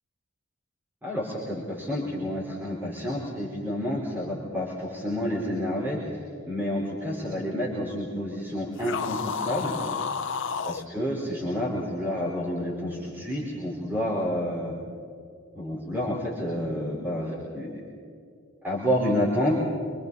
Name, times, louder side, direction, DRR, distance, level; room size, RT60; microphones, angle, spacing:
voice 1, 1.0-6.0 6.5-9.7 10.6-14.8 15.5-17.8 18.6-19.5, equal, 10° right, -6 dB, 4.3 m, -29 dB
sound 1, 8.8-10.9, left 6 dB, 65° left, 0.8 m, -31 dB
27.0 x 25.5 x 4.1 m, 2.4 s
head